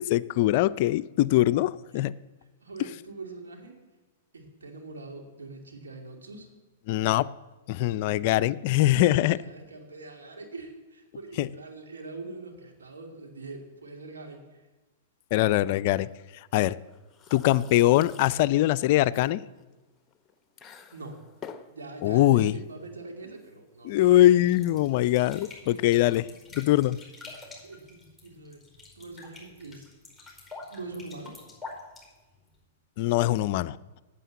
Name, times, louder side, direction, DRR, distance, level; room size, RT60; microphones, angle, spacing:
voice 1, 0.0-2.2 6.9-7.3 7.7-9.4 11.4-11.5 15.3-16.1 16.5-16.8 17.3-19.4 22.0-22.5 23.9-26.3 26.5-27.0 33.0-33.8, left 15 dB, 55° left, 16 dB, 0.4 m, -22 dB
voice 2, 2.6-3.8 4.3-6.5 8.7-8.8 9.3-14.7 20.9-21.2 21.7-24.3 25.5-26.4 27.6-28.7 28.9-29.9 30.7-31.4, right 3 dB, 90° right, 2 dB, 2.5 m, -43 dB
sound 1, 15.9-26.9, left 7 dB, 25° left, 0.9 m, -51 dB
sound 2, 24.4-32.6, left 3 dB, 5° right, 4.9 m, -47 dB
9.1 x 8.1 x 8.4 m, 1.2 s
hypercardioid pair, 120°, 0 cm